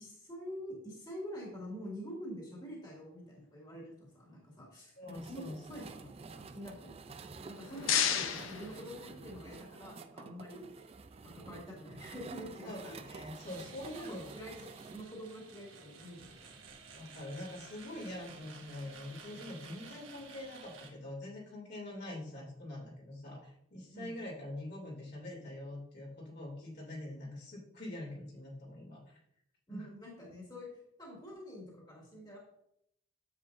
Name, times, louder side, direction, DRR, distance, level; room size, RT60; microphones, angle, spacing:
voice 1, 0.0-10.9 11.2-13.0 13.9-14.5 14.9-16.5 23.9-24.1 29.7-32.4, equal, 20° left, -4 dB, 2.2 m, -47 dB
voice 2, 5.0-5.5 12.6-14.2 16.9-29.2 29.7-29.9, left 1 dB, 55° left, -4 dB, 2.9 m, -44 dB
sound 1, 5.1-15.0, right 4 dB, 30° right, 0.4 m, -50 dB
sound 2, 7.4-9.5, left 8 dB, 85° left, 0.7 m, -34 dB
sound 3, 13.3-20.9, right 4 dB, 80° right, 1.5 m, -53 dB
9.8 x 7.4 x 2.6 m, 0.76 s
head